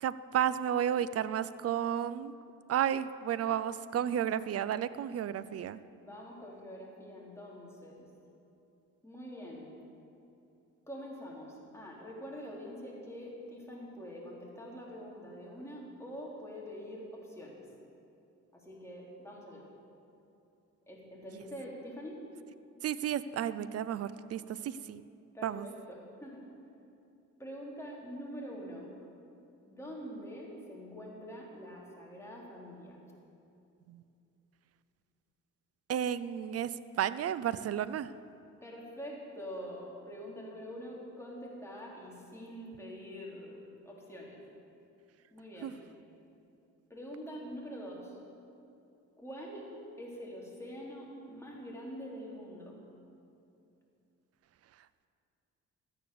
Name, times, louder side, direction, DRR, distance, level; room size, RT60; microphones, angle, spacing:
voice 1, 0.0-2.3 2.7-5.8 22.8-25.0 25.4-25.7 33.9-34.0 35.9-38.1 45.6-45.7, right 10 dB, 55° right, 15 dB, 0.5 m, -32 dB
voice 2, 5.9-8.1 9.0-9.7 10.9-17.6 18.5-19.7 20.9-22.2 25.3-26.6 27.4-28.9 29.7-33.0 38.6-44.4 45.3-45.8 46.9-48.2 49.2-52.8, equal, 10° left, -4 dB, 3.5 m, -45 dB
13.5 x 9.1 x 6.8 m, 2.7 s
cardioid pair, 90°, 30 cm